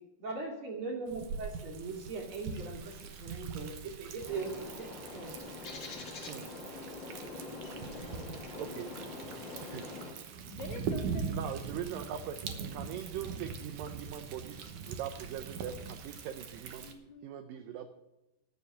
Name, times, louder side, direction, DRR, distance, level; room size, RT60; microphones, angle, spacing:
voice 1, 0.2-4.9 5.1-5.4, right 4 dB, 35° right, -1 dB, 2.6 m, -40 dB
Thunder, 1.1-16.9, right 5 dB, 70° right, 1.9 m, -42 dB
Bird, 4.2-10.2, left 3 dB, 40° left, 1.7 m, -44 dB
voice 2, 8.6-8.9 9.6-9.8 11.3-16.9 17.2-17.9, right 9 dB, 85° right, 9 dB, 1.9 m, -41 dB
voice 3, 9.8-11.3 12.8-12.9 16.8-17.3, left 5 dB, 80° left, 3 dB, 1.6 m, -48 dB
12.5 x 7.0 x 9.6 m, 0.97 s
omnidirectional pair, 4.8 m